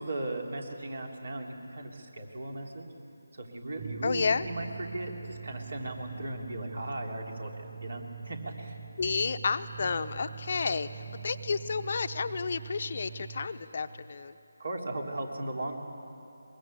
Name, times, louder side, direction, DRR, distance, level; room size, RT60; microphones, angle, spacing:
voice 1, 0.0-2.9 3.4-8.8 14.6-15.8, right 1 dB, 65° right, 2 dB, 3.4 m, -37 dB
sound 1, 3.8-13.5, right 7 dB, 25° right, 3.0 m, -44 dB
voice 2, 4.0-4.5 9.0-14.4, left 5 dB, 45° left, 10 dB, 0.8 m, -31 dB
22.5 x 21.5 x 8.6 m, 2.8 s
figure-of-eight pair, 160°, 0 cm